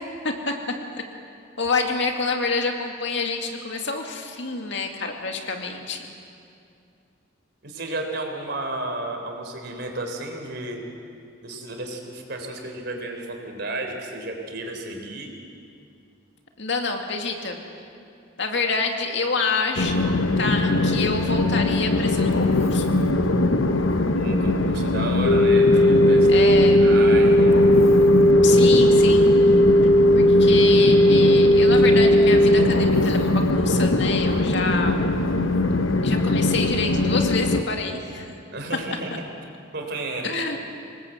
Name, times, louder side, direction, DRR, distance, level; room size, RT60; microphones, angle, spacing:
voice 1, 0.2-0.7 1.6-6.0 16.6-17.6 18.4-23.0 26.3-27.0 28.4-29.3 30.1-35.1 36.0-38.3 40.2-40.6, left 4 dB, 60° left, 3 dB, 2.3 m, -27 dB
voice 2, 7.6-10.9 11.4-15.3 24.1-26.5 26.8-27.6 38.5-39.1 39.7-40.6, right 2 dB, 55° right, 3 dB, 3.7 m, -32 dB
Train, 19.8-37.6, left 2 dB, 80° left, 1.1 m, -22 dB
sound 1, 25.3-32.7, equal, 40° left, 1.2 m, -16 dB
25.5 x 20.0 x 7.9 m, 2.5 s
head